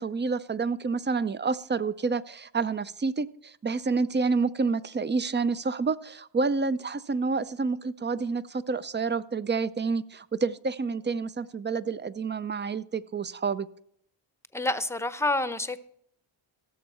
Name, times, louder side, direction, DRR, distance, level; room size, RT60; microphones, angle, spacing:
voice 1, 0.0-13.7, right 4 dB, 25° right, 0.4 m, -28 dB
voice 2, 14.5-15.8, left 2 dB, 5° left, 0.7 m, -28 dB
16.5 x 7.0 x 4.3 m
cardioid pair, 70°, 48 cm